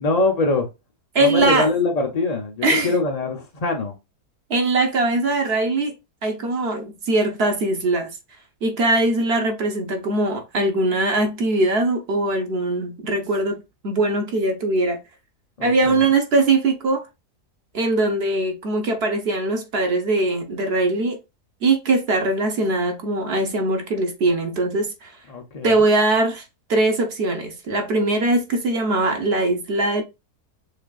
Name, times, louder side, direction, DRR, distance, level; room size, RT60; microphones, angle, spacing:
voice 1, 0.0-0.7 1.2-3.9 15.6-16.0 25.3-25.9, left 3 dB, 85° left, 0.3 m, -23 dB
voice 2, 1.1-1.7 2.6-2.9 4.5-5.9 6.2-8.1 8.6-15.0 15.6-17.0 17.7-21.2 21.6-25.1 25.6-26.4 26.7-30.0, right 2 dB, 50° right, 0.9 m, -21 dB
6.5 x 2.5 x 2.3 m
omnidirectional pair, 1.7 m